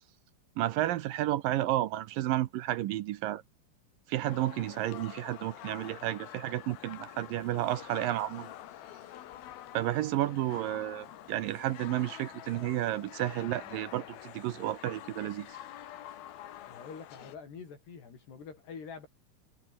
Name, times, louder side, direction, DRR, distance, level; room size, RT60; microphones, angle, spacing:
voice 1, 0.6-3.4 4.1-8.5 9.7-15.5, right 14 dB, 75° right, 2.3 m, -32 dB
sound 1, 4.2-17.4, left 12 dB, 70° left, 3.3 m, -47 dB
voice 2, 16.7-19.1, left 6 dB, 90° left, 7.4 m, -46 dB
omnidirectional pair, 4.6 m